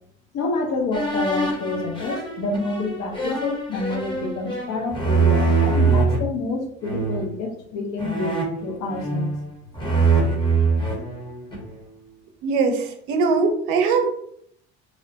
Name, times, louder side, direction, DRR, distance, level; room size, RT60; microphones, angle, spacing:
voice 1, 0.3-8.3 8.6-9.3, left 3 dB, 55° left, 2 dB, 0.8 m, -28 dB
sound 1, 0.9-6.2 6.8-7.3 8.0-9.4 9.7-11.7, right 4 dB, 15° left, 0.8 m, -23 dB
voice 2, 12.4-14.1, right 4 dB, 75° right, 5 dB, 0.6 m, -21 dB
2.8 x 2.0 x 2.7 m, 0.67 s
hypercardioid pair, 70°, 32 cm